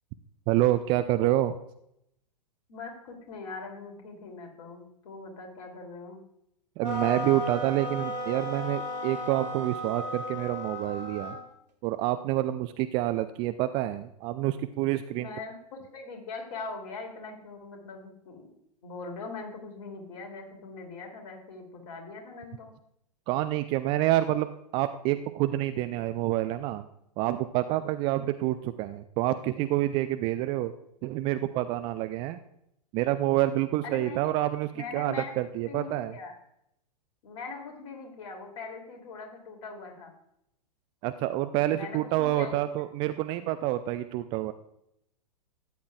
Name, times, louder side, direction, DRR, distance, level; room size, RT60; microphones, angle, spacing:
voice 1, 0.5-1.5 6.8-11.4 11.8-15.3 23.3-26.8 27.2-30.7 31.0-32.4 32.9-36.1 41.0-44.5, right 14 dB, 25° right, 11 dB, 0.4 m, -28 dB
voice 2, 2.7-6.2 15.2-18.5 18.8-22.7 33.8-34.2 34.7-35.3 35.7-36.3 37.2-40.1 41.7-42.6, left 4 dB, 50° left, 2 dB, 2.9 m, -41 dB
sound 1, 6.8-11.5, equal, 80° right, 2.2 m, -35 dB
13.5 x 9.3 x 2.4 m, 0.77 s
figure-of-eight pair, 105°, 21 cm